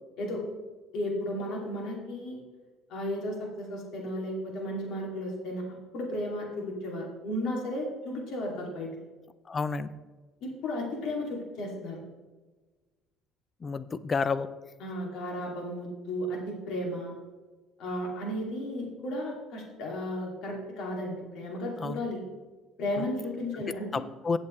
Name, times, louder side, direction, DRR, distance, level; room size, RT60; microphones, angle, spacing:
voice 1, 0.9-2.4 2.9-5.6 5.9-8.9 10.4-12.0 14.8-17.1 17.8-22.2 22.8-24.1, left 1 dB, 60° left, -1 dB, 2.6 m, -34 dB
voice 2, 9.5-9.9 13.6-14.5 21.8-22.0 23.0-23.1 23.9-24.4, left 4 dB, 20° left, 15 dB, 0.4 m, -30 dB
16.5 x 7.2 x 3.2 m, 1.3 s
cardioid pair, 165°, 0 cm